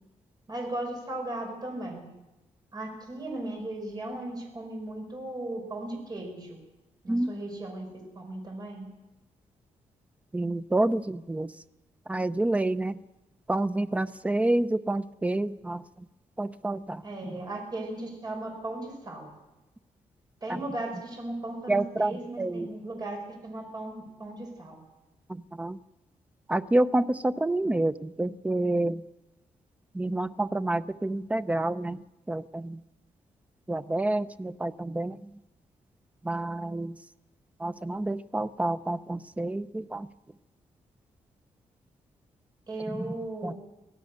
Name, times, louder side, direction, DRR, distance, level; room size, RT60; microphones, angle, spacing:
voice 1, 0.5-2.1 2.7-6.6 7.0-7.9 8.1-8.9 17.0-19.3 20.4-24.8 42.7-43.6, right 1 dB, 30° right, 1 dB, 6.0 m, -37 dB
voice 2, 10.3-11.5 12.1-13.0 13.5-15.8 16.4-17.4 20.5-20.6 21.7-22.7 25.3-25.8 26.5-29.0 29.9-32.0 32.3-32.8 33.7-35.3 36.2-36.9 37.6-40.1 42.9-43.1 43.4-43.5, right 2 dB, 10° right, 12 dB, 0.6 m, -28 dB
25.0 x 17.0 x 6.5 m, 1.0 s
wide cardioid pair, 145°, 13 cm